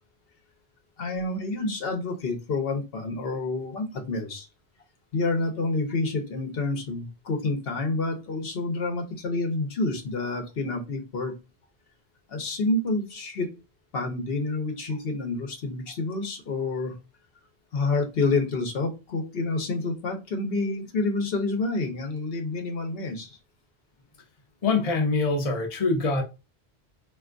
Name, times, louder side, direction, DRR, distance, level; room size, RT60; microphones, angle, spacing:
voice 1, 1.0-4.5 5.1-11.3 12.3-13.5 13.9-17.0 17.7-23.4, left 3 dB, 65° left, 0.9 m, -28 dB
voice 2, 24.6-26.2, left 3 dB, 40° left, 0.7 m, -24 dB
3.3 x 2.5 x 2.4 m
omnidirectional pair, 1.1 m